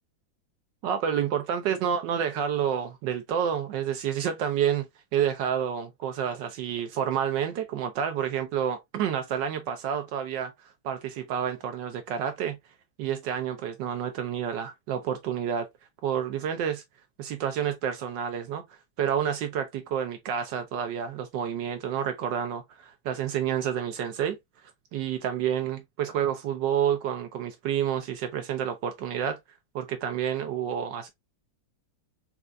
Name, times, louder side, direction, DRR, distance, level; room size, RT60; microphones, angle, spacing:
voice 1, 0.8-10.5 10.8-12.6 13.0-15.7 16.0-16.8 17.2-18.6 19.0-24.4 24.6-29.4 29.7-31.1, right 8 dB, 75° right, 1.2 m, -29 dB
4.4 x 2.4 x 2.4 m
omnidirectional pair, 2.1 m